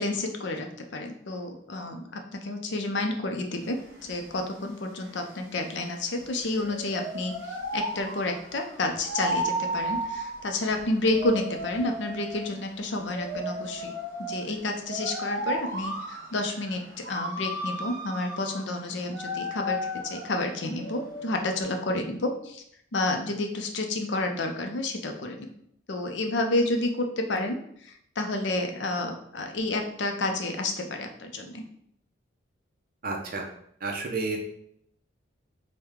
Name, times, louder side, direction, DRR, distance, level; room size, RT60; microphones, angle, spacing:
voice 1, 0.0-13.9 14.2-22.6 22.9-25.5 25.9-31.6, left 2 dB, 60° left, 4 dB, 0.5 m, -30 dB
sound 1, 3.6-21.6, equal, 60° right, 1.2 m, -35 dB
voice 2, 33.0-33.5 33.8-34.4, right 3 dB, 45° right, 2 dB, 0.6 m, -30 dB
4.6 x 2.2 x 3.5 m, 0.70 s
head